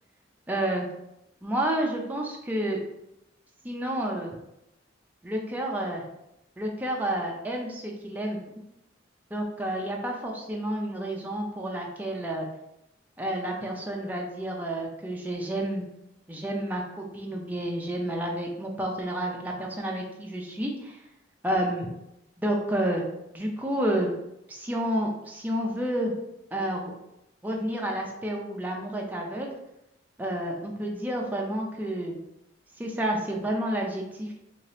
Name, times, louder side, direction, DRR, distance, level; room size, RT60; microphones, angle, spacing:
voice 1, 0.5-0.9 1.4-2.8 3.6-4.3 5.2-6.0 6.6-8.4 9.3-12.5 13.2-15.9 16.3-21.0 21.4-21.9 22.4-23.0 23.3-24.1 24.5-26.1 26.5-26.9 27.4-29.5 30.2-32.2 32.8-34.4, right 1 dB, 10° right, -1 dB, 0.4 m, -30 dB
2.8 x 2.7 x 3.2 m, 0.85 s
head